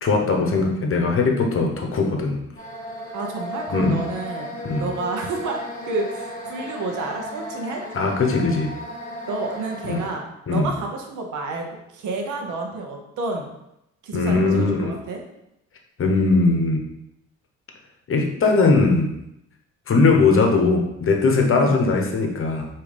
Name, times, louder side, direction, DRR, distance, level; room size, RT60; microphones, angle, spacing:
voice 1, 0.0-2.4 3.7-4.0 4.6-4.9 7.9-8.7 9.8-10.0 10.5-10.7 14.1-14.9 16.0-16.8 18.1-19.1 19.9-22.7, left 3 dB, 45° left, 2 dB, 0.9 m, -19 dB
sound 1, 2.6-10.1, equal, 25° left, 1.6 m, -35 dB
voice 2, 3.1-4.5 4.8-7.8 9.3-10.2 10.5-11.7 11.9-13.5 14.0-15.2 21.6-21.8, right 3 dB, 75° right, 2 dB, 0.9 m, -29 dB
5.0 x 2.9 x 3.3 m, 0.84 s
cardioid pair, 90°, 30 cm